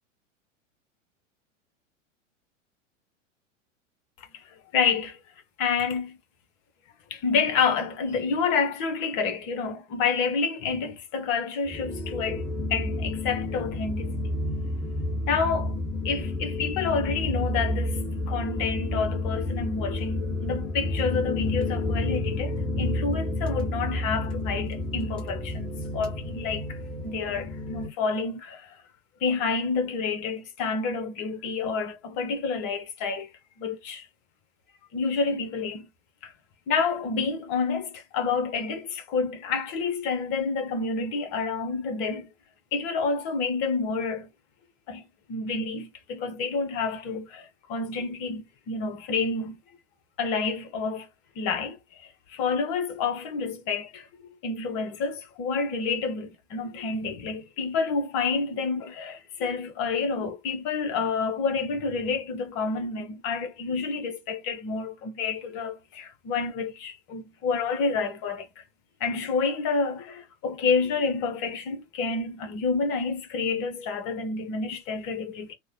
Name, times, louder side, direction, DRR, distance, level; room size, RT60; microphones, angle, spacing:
voice 1, 4.7-5.2 5.6-6.2 7.1-14.3 15.2-15.7 16.0-28.8 29.2-33.3 33.6-34.1 34.9-35.9 36.2-36.3 36.7-42.3 42.7-44.3 44.9-49.6 50.2-51.1 51.4-51.8 52.3-54.1 54.4-68.6 69.0-75.6, left 5 dB, 40° left, 1.0 m, -29 dB
sound 1, 11.7-27.9, left 2 dB, 5° left, 0.3 m, -30 dB
3.1 x 2.2 x 3.9 m
figure-of-eight pair, 95°, 38 cm